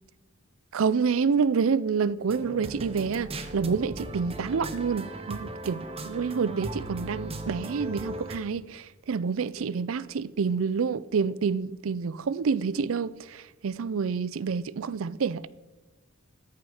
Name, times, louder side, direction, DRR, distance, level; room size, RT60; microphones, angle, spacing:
voice 1, 0.7-15.5, right 5 dB, 70° right, 0.4 m, -28 dB
sound 1, 2.3-8.4, right 1 dB, 30° right, 0.9 m, -37 dB
13.5 x 7.2 x 4.9 m
head